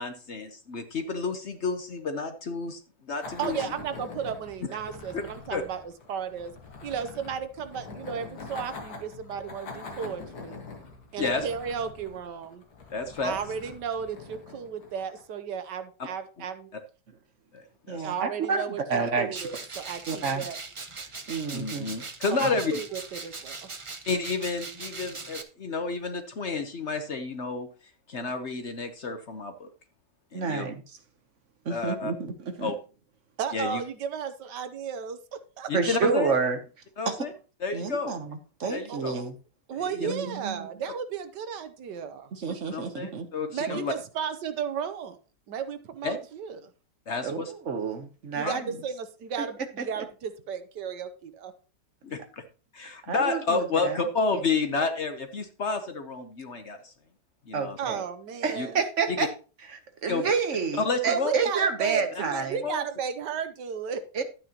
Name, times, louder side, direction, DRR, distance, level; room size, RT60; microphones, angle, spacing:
voice 1, 0.0-3.6 5.1-5.2 5.5-5.6 11.2-11.4 12.9-13.4 17.5-18.0 21.5-22.7 24.1-27.7 28.1-29.7 30.3-30.7 31.7-32.1 32.6-32.8 33.5-33.8 35.7-36.3 37.0-37.3 37.6-38.2 38.7-39.1 39.8-40.1 42.7-43.9 46.0-46.2 47.1-47.5 48.4-48.6 52.0-52.4 52.7-56.9 57.5-57.8 58.6-58.7 59.1-59.3 60.1-60.3 60.7-61.3 62.6-62.8, left 4 dB, 50° left, 7 dB, 1.1 m, -30 dB
sound 1, 3.2-15.4, left 4 dB, 65° left, 2.1 m, -44 dB
voice 2, 3.4-5.8 6.1-6.5 6.8-10.6 11.1-12.6 13.2-16.7 18.0-20.6 22.3-23.7 33.4-35.7 38.9-39.2 39.7-42.3 43.5-45.2 45.5-46.7 48.3-51.5 57.8-58.8 61.1-64.0, right 7 dB, 85° right, 11 dB, 1.6 m, -34 dB
voice 3, 17.9-18.6 18.9-19.5 20.1-20.5 21.3-21.9 22.4-22.5 30.3-30.8 31.6-32.7 35.7-36.6 37.1-37.2 37.7-38.2 38.6-39.3 40.0-40.7 42.3-43.3 43.7-43.8 47.2-48.6 49.4-49.5 49.8-49.9 53.1-54.0 57.5-58.0 58.4-59.3 59.7-62.6 64.1-64.2, right 5 dB, 50° right, 7 dB, 1.3 m, -29 dB
sound 2, 19.3-25.4, right 4 dB, 35° right, 0.5 m, -40 dB
11.5 x 8.9 x 2.9 m, 0.35 s
omnidirectional pair, 1.8 m